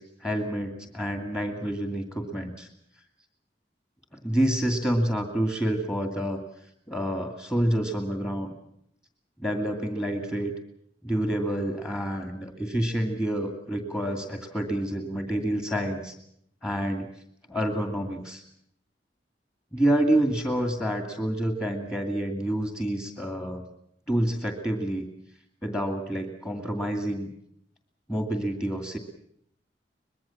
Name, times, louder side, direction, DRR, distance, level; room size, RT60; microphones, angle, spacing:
voice 1, 0.0-2.7 4.2-6.4 6.9-8.5 9.4-10.5 11.0-16.1 16.6-17.1 17.5-18.4 19.7-23.6 24.1-25.1 25.6-27.3 28.1-29.0, right 1 dB, 15° left, 4 dB, 2.3 m, -28 dB
24.0 x 21.5 x 7.2 m, 0.70 s
head